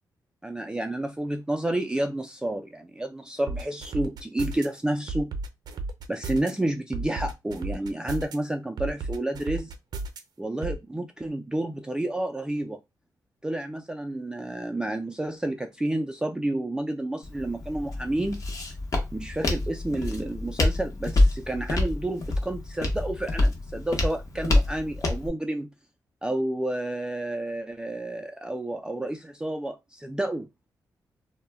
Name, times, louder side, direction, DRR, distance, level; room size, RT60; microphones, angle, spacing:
voice 1, 0.4-5.3 6.1-9.7 10.4-12.8 13.4-18.4 19.1-25.7 26.2-30.5, right 1 dB, 10° right, 0.3 m, -30 dB
sound 1, 3.5-4.7 5.1-6.5 6.9-8.3 8.8-10.2 10.6-10.8, right 3 dB, 65° right, 0.6 m, -33 dB
Walk footsteps, 17.2-25.3, left 2 dB, 45° left, 0.9 m, -27 dB
2.2 x 2.1 x 3.3 m
cardioid pair, 75°, 8 cm